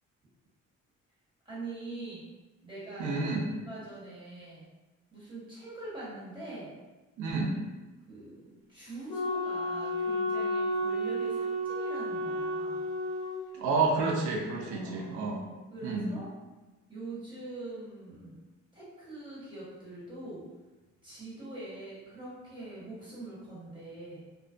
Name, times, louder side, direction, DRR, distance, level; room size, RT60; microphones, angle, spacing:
voice 1, 1.4-2.2 2.6-3.2 3.6-4.7 5.1-6.7 8.1-12.9 14.7-15.3 15.7-16.3 16.9-18.4 18.7-20.4 21.0-24.3, right 2 dB, 15° right, -10 dB, 1.3 m, -43 dB
voice 2, 3.0-3.5 7.2-7.6 13.5-15.4 15.8-16.1, right 3 dB, 80° right, 0 dB, 0.5 m, -29 dB
Wind instrument woodwind instrument, 9.1-13.4, equal, 15° left, 0.6 m, -32 dB
2.3 x 2.2 x 2.4 m, 1.2 s
cardioid pair, 90°, 30 cm